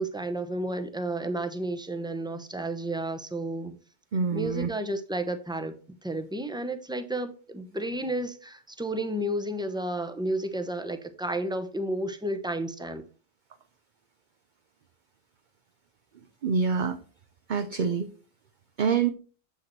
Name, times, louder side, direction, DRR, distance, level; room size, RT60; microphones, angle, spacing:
voice 1, 0.0-3.8 4.3-5.8 6.0-13.0, right 1 dB, 5° right, 0.7 m, -32 dB
voice 2, 4.1-4.7 16.4-17.0 17.5-18.1 18.8-19.1, right 6 dB, 55° right, 0.7 m, -26 dB
7.7 x 6.5 x 3.0 m
omnidirectional pair, 1.1 m